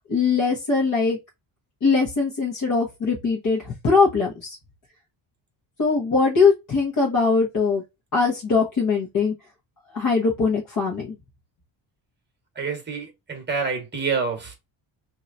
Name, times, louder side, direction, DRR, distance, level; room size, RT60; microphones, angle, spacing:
voice 1, 0.1-1.2 1.8-4.6 5.8-7.8 8.1-9.3 9.9-11.2, left 4 dB, 40° left, 1.2 m, -21 dB
voice 2, 12.5-14.6, right 5 dB, 20° right, 1.3 m, -27 dB
3.1 x 2.8 x 2.5 m
cardioid pair, 135°, 48 cm